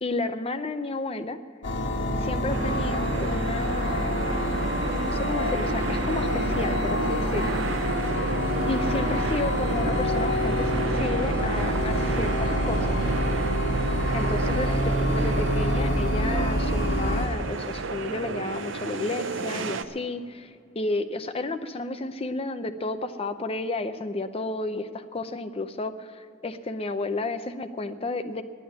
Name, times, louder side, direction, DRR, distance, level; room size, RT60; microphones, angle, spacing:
voice 1, 0.0-1.4 2.2-4.0 4.8-7.9 8.6-13.0 14.1-28.4, left 2 dB, 30° left, 10 dB, 0.6 m, -32 dB
sound 1, 1.6-17.3, equal, 85° left, 1.4 m, -26 dB
sound 2, 2.5-19.8, right 4 dB, 90° right, 0.7 m, -31 dB
11.0 x 9.2 x 9.5 m, 2.3 s
head